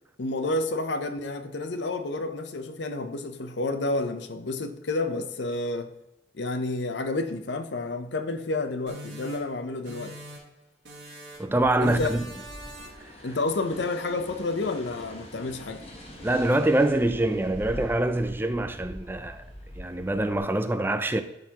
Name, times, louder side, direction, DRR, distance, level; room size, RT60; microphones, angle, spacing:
voice 1, 0.2-5.9 6.3-10.2 11.8-12.1 13.2-15.8, left 2 dB, 70° left, 0.6 m, -30 dB
sound 1, 8.9-10.6 10.8-11.5 11.8-13.1, right 1 dB, 70° right, 2.3 m, -44 dB
voice 2, 11.4-12.2 13.0-13.1 16.2-19.4 19.8-21.2, right 1 dB, 10° right, 0.4 m, -25 dB
sound 2, 11.5-20.4, equal, 30° left, 1.4 m, -43 dB
11.5 x 4.0 x 2.9 m
head